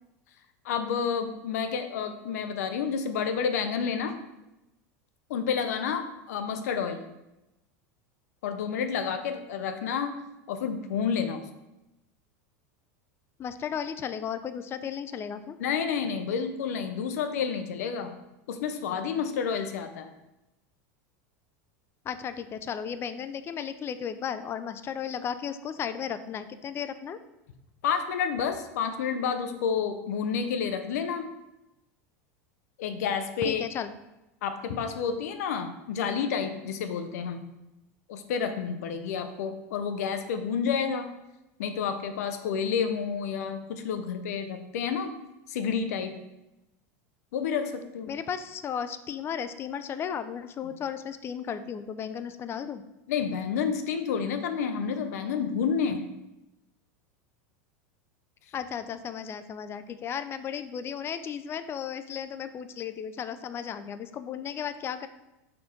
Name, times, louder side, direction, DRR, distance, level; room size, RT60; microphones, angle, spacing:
voice 1, 0.6-4.1 5.3-7.0 8.4-10.1 10.5-11.4 15.6-18.1 18.5-20.1 27.8-31.3 32.8-33.6 34.4-37.4 38.1-41.1 41.6-45.1 45.5-46.1 47.3-48.1 50.6-50.7 53.1-56.1, left 6 dB, 80° left, 8 dB, 0.7 m, -30 dB
voice 2, 13.4-15.6 22.0-27.2 33.4-34.0 48.1-52.8 58.5-65.1, left 8 dB, 30° left, 11 dB, 0.4 m, -35 dB
4.4 x 4.1 x 5.1 m, 0.95 s
supercardioid pair, 120°, 8 cm